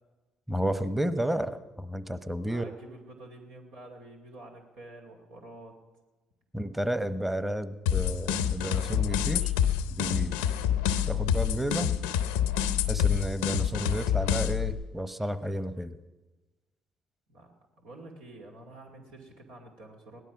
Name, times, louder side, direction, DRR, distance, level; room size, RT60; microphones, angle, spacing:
voice 1, 0.5-2.7 6.5-9.5 10.0-10.3 11.1-11.9 12.9-16.0, right 1 dB, 10° right, 12 dB, 1.0 m, -31 dB
voice 2, 2.4-5.8 17.3-17.5 17.8-20.2, right 2 dB, 85° right, 0 dB, 2.4 m, -48 dB
sound 1, 7.9-14.7, left 9 dB, 90° left, 0.7 m, -27 dB
17.5 x 12.0 x 6.0 m, 1.2 s
hypercardioid pair, 55°, 2 cm